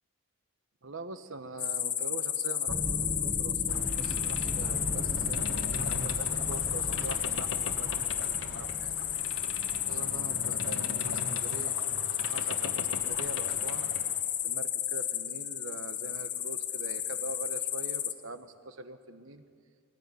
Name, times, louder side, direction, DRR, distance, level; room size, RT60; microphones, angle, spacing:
voice 1, 0.8-9.0 9.4-11.8 12.3-13.9 14.4-19.4, right 3 dB, 70° right, 9 dB, 1.3 m, -44 dB
sound 1, 1.6-18.1, left 10 dB, 35° left, 1.1 m, -32 dB
sound 2, 2.7-10.5, equal, 15° right, 1.5 m, -39 dB
Boat Water vehicle, 3.7-14.2, left 3 dB, 70° left, 1.5 m, -41 dB
21.0 x 18.5 x 9.8 m, 2.3 s
head